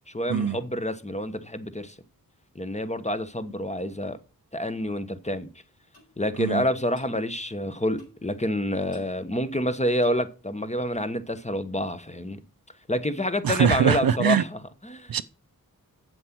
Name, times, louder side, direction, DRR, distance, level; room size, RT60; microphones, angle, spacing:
voice 1, 0.1-1.9 2.5-4.2 4.5-5.5 6.2-12.4 12.9-15.1, left 1 dB, 20° left, 1.1 m, -28 dB
Clock, 5.9-6.1 6.9-7.2 8.0-8.3 8.9-9.2 9.9-10.2 10.9-11.0, left 1 dB, 85° left, 6.1 m, -53 dB
voice 2, 13.4-14.4 15.1-15.2, right 7 dB, 70° right, 0.6 m, -22 dB
8.0 x 7.6 x 6.1 m
wide cardioid pair, 55°, 37 cm